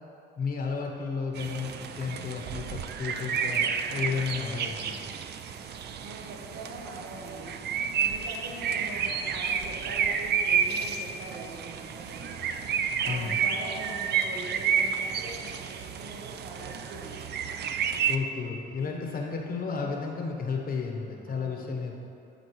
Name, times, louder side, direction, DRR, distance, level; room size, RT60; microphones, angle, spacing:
voice 1, 0.4-4.9 13.1-13.4 18.1-22.0, left 5 dB, 50° left, 1 dB, 0.9 m, -33 dB
sound 1, 1.3-18.2, right 7 dB, 55° right, 0.4 m, -30 dB
voice 2, 2.0-2.3 3.9-4.3 6.0-7.6 8.0-12.5 13.0-17.3 18.8-19.3 21.3-21.8, right 2 dB, 75° right, -1 dB, 1.0 m, -43 dB
11.0 x 4.3 x 3.1 m, 2.7 s
cardioid pair, 90°, 20 cm